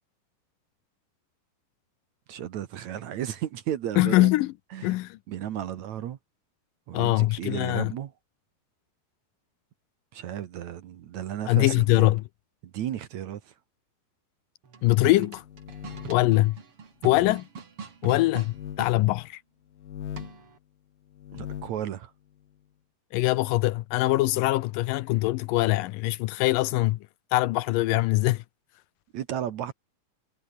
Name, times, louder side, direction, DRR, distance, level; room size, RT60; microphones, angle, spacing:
voice 1, 2.3-4.3 4.7-5.0 5.3-6.2 6.9-8.1 10.1-12.1 12.7-13.5 21.3-22.1 29.1-29.7, right 10 dB, 65° right, 1.9 m, -34 dB
voice 2, 4.0-4.5 4.8-5.2 6.9-7.9 11.5-12.2 14.8-15.4 16.1-16.6 17.0-17.5 18.0-19.4 23.1-27.0 27.3-28.4, left 18 dB, 85° left, 1.9 m, -23 dB
sound 1, 14.6-19.0 20.2-20.6, right 5 dB, 35° right, 3.4 m, -41 dB
sound 2, 15.3-16.3 17.0-17.4 18.4-18.8 19.7-20.4 21.1-21.8, left 10 dB, 60° left, 3.5 m, -40 dB
omnidirectional pair, 4.7 m